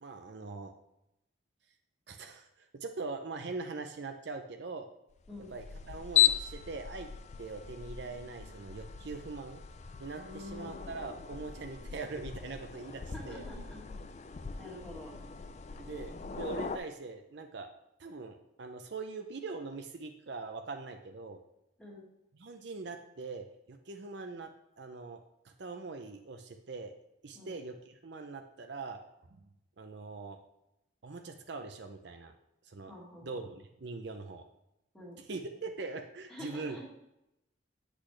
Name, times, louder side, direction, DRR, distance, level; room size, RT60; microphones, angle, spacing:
voice 1, 0.0-0.7 2.1-4.9 5.5-7.1 7.4-9.6 10.0-13.4 15.8-17.7 18.0-21.4 22.3-26.9 27.2-29.0 29.3-29.5 29.8-30.4 31.0-32.3 32.6-32.9 33.2-34.4 35.2-36.9, right 3 dB, 60° right, 6 dB, 0.6 m, -42 dB
Air Conditioner On Off A, 5.2-16.8, left 10 dB, 35° left, 0.3 m, -36 dB
voice 2, 10.1-11.1 13.1-13.8 14.6-15.1 21.8-22.0 27.3-27.6 32.9-33.5 34.9-35.2 36.3-36.8, left 1 dB, 5° left, -4 dB, 1.8 m, -47 dB
8.1 x 6.1 x 3.2 m, 0.86 s
head